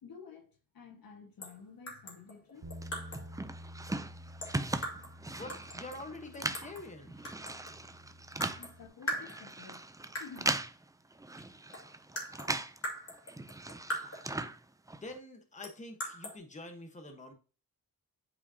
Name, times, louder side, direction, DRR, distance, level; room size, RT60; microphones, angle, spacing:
voice 1, 0.0-0.5 0.7-3.4 8.5-9.8 10.2-10.5, left 5 dB, 70° left, 1.7 m, -52 dB
sound 1, 1.4-1.6 1.9-3.3 4.4-5.2 5.5-6.9 7.2-7.8 8.4-8.8 9.1-9.8 10.1-10.5 11.4-11.5 11.7-14.4 15.6-16.4, equal, 40° left, 2.2 m, -41 dB
Bass guitar, 2.6-8.9, equal, 45° right, 1.4 m, -51 dB
sound 2, 2.8-12.8 13.1-15.2, right 2 dB, 10° right, 0.5 m, -39 dB
voice 2, 5.3-7.3 15.0-17.3, left 2 dB, 20° left, 1.2 m, -46 dB
8.2 x 4.9 x 2.8 m
cardioid pair, 80°, 36 cm